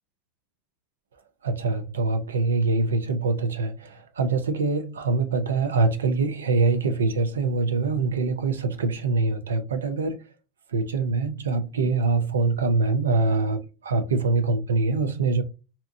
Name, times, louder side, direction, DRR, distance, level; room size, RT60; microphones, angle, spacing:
voice 1, 1.4-10.3 10.7-15.4, right 3 dB, 90° right, 0.4 m, -24 dB
2.8 x 2.2 x 2.5 m
hypercardioid pair, 85°, 0 cm